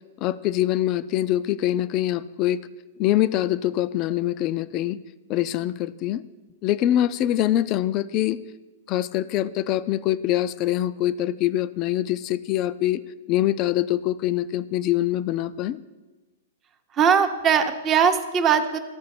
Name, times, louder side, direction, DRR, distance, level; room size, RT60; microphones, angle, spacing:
voice 1, 0.2-2.6 3.0-5.0 5.3-6.2 6.6-8.4 8.9-13.0 13.3-15.8, left 13 dB, 35° left, 15 dB, 0.4 m, -24 dB
voice 2, 16.9-18.8, right 7 dB, 25° right, 7 dB, 0.7 m, -20 dB
14.0 x 4.8 x 4.3 m, 1.2 s
hypercardioid pair, 135°, 0 cm